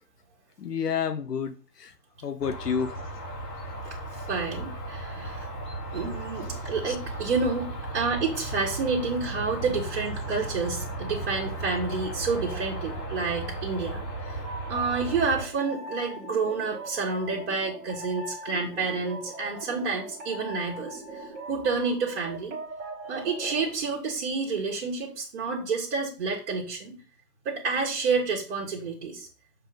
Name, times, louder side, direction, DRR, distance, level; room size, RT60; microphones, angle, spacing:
voice 1, 0.6-1.9 2.2-3.0 3.6-3.7 6.4-6.5 6.9-7.0, left 7 dB, 70° left, 0.8 m, -30 dB
sound 1, 2.4-15.5, right 1 dB, 90° left, 3.1 m, -35 dB
voice 2, 3.8-5.5 5.9-7.7 7.9-14.4 14.7-22.6 23.1-27.0 27.4-29.3, right 4 dB, 35° right, 1.6 m, -29 dB
sound 2, 14.4-23.7, right 2 dB, 20° right, 1.1 m, -40 dB
6.8 x 3.7 x 5.1 m
hypercardioid pair, 145°, 49 cm